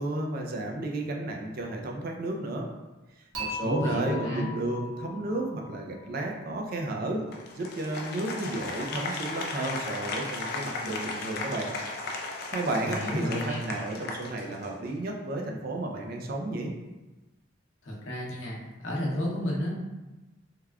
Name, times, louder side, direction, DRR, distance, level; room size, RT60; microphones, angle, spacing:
voice 1, 0.0-2.7 3.4-7.3 7.5-11.7 12.5-16.7, right 2 dB, 50° right, 1 dB, 0.4 m, -32 dB
Dishes pots and pans / Chink clink, 3.3-6.5, left 2 dB, 85° right, 1.0 m, -39 dB
voice 2, 3.6-4.5 12.8-13.7 17.8-18.6 18.8-19.8, left 1 dB, 75° left, -4 dB, 0.7 m, -31 dB
Applause, 7.3-14.9, left 3 dB, 50° left, 0.3 m, -36 dB
3.4 x 2.3 x 2.2 m, 1.1 s
head